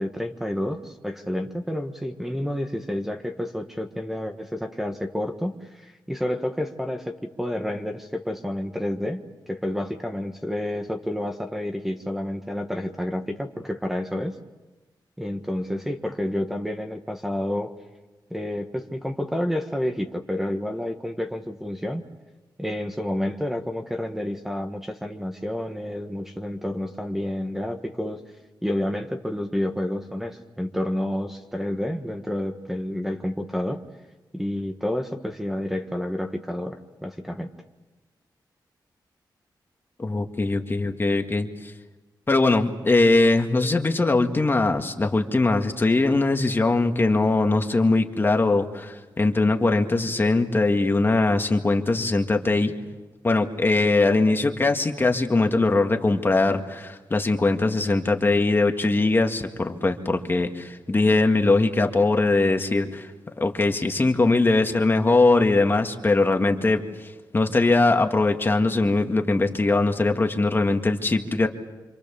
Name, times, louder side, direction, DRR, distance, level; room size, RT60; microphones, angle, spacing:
voice 1, 0.0-9.2 9.5-14.3 15.2-17.7 18.3-22.0 22.6-28.2 28.6-33.8 34.3-37.5, left 1 dB, 5° right, 4 dB, 1.6 m, -29 dB
voice 2, 40.0-41.5 42.3-52.7 53.2-63.1 63.4-66.8 67.3-71.5, left 3 dB, 30° left, 4 dB, 2.0 m, -21 dB
28.0 x 27.0 x 7.1 m, 1.1 s
wide cardioid pair, 125°, 8 cm